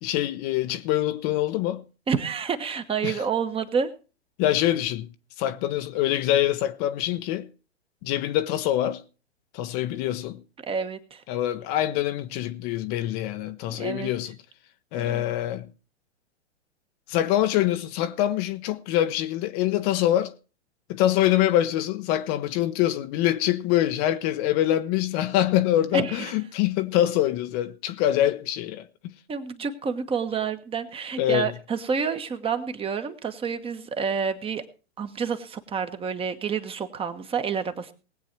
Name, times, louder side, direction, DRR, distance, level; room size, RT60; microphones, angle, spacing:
voice 1, 0.0-1.8 3.0-3.2 4.4-5.1 5.4-7.5 8.0-9.0 9.5-10.4 11.3-14.4 14.9-15.7 17.1-20.3 20.9-29.1 31.2-31.5, left 13 dB, 35° left, 0.9 m, -24 dB
voice 2, 2.1-3.9 10.6-11.2 13.8-14.1 14.9-15.2 25.9-26.3 29.3-34.6 35.0-37.9, right 6 dB, 15° right, 1.3 m, -29 dB
19.5 x 8.3 x 4.5 m
hypercardioid pair, 120°, 34 cm